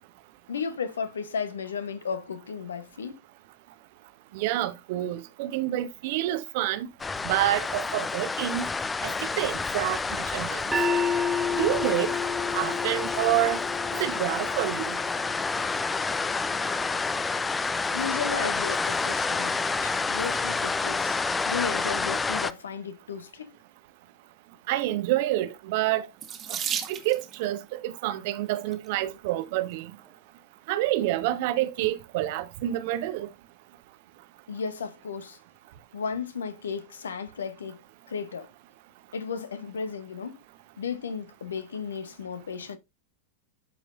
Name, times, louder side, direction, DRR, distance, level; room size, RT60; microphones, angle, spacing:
voice 1, 0.5-3.2 17.9-19.5 19.8-23.6 34.5-35.4 35.9-37.8 38.1-38.5 39.1-40.4 40.8-42.8, left 6 dB, 70° left, 1.0 m, -34 dB
voice 2, 4.3-6.9 7.2-8.7 9.0-10.0 10.3-10.6 11.5-12.1 12.5-13.6 14.0-15.0 24.7-26.1 26.5-26.6 26.9-29.9 30.7-33.3, right 14 dB, 50° right, 0.9 m, -28 dB
sound 1, 7.0-22.5, left 4 dB, 15° left, 0.5 m, -29 dB
sound 2, 10.7-16.9, left 4 dB, 5° right, 2.0 m, -31 dB
Water tap faucet / Sink (filling or washing), 26.2-27.4 28.5-28.9 29.6-29.7 30.0-30.1, right 9 dB, 30° right, 1.5 m, -33 dB
12.5 x 4.7 x 2.5 m
figure-of-eight pair, 90°, 0 cm